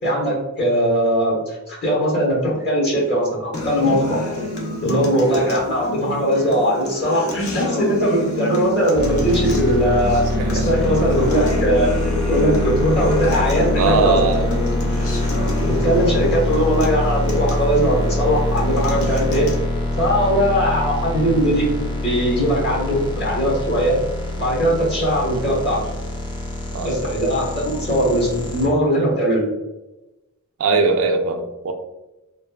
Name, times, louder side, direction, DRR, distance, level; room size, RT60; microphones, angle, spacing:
voice 1, 0.0-4.2 4.8-10.2 10.5-11.9 12.3-14.2 15.6-19.5 20.0-21.7 22.0-24.0 24.4-25.8 26.8-29.4, equal, 55° left, -4 dB, 1.2 m, -20 dB
Acoustic guitar, 3.5-19.5, left 1 dB, 70° left, 0.6 m, -28 dB
sound 1, 8.9-28.7, left 1 dB, 20° left, 0.4 m, -24 dB
voice 2, 13.8-14.6 26.7-26.9 30.6-31.7, right 4 dB, 70° right, 5 dB, 0.4 m, -20 dB
3.1 x 2.3 x 2.2 m, 1.0 s
head